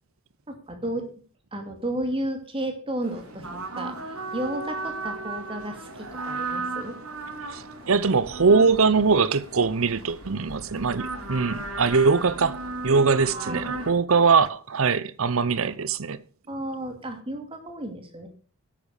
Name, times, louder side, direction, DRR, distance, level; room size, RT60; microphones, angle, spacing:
voice 1, 0.5-1.0 1.5-6.9 13.2-13.7 16.5-18.3, right 1 dB, 25° right, 2.6 m, -33 dB
sound 1, 3.0-13.9, right 3 dB, 85° right, 3.0 m, -36 dB
voice 2, 7.5-16.2, right 4 dB, 70° right, 0.7 m, -22 dB
10.5 x 8.7 x 6.6 m
head